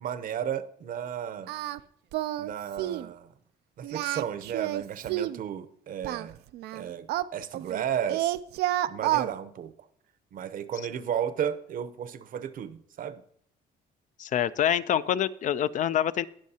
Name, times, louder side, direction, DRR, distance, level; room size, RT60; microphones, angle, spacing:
voice 1, 0.0-1.5 2.4-3.3 3.8-6.4 6.7-8.4 8.9-9.7 10.3-13.2, right 9 dB, 55° right, 0.8 m, -33 dB
Singing, 1.5-1.8 2.1-2.5 2.8-3.1 3.8-5.4 6.0-7.8 8.1-9.3, right 14 dB, 75° right, 0.5 m, -29 dB
voice 2, 14.2-16.3, left 10 dB, 50° left, 0.5 m, -26 dB
18.5 x 6.4 x 2.8 m
cardioid pair, 110°, 17 cm